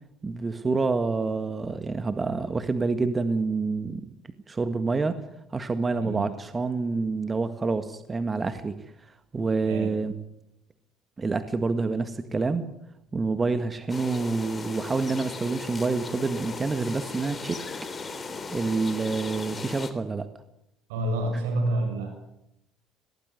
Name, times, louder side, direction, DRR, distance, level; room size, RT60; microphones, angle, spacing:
voice 1, 0.2-4.0 4.5-5.2 5.5-8.8 9.3-10.1 11.2-12.6 13.1-17.6 18.5-20.3, right 4 dB, 25° right, 10 dB, 1.7 m, -27 dB
voice 2, 5.9-6.3 9.7-10.0 20.9-22.1, right 1 dB, 85° right, 4 dB, 7.0 m, -28 dB
sound 1, 13.9-19.9, left 4 dB, 30° left, 3.2 m, -37 dB
18.0 x 18.0 x 9.7 m, 0.82 s
supercardioid pair, 75°, 0 cm